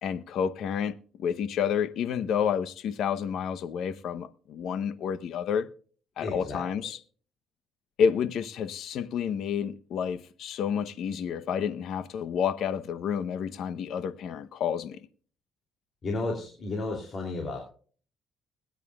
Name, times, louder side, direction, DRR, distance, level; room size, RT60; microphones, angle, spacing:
voice 1, 0.0-5.7 6.2-7.0 8.0-15.1, left 7 dB, 65° left, 0.9 m, -30 dB
voice 2, 6.2-6.7 16.0-17.7, left 2 dB, 40° left, 2.9 m, -33 dB
21.5 x 9.3 x 2.4 m
cardioid pair, 110°, 0 cm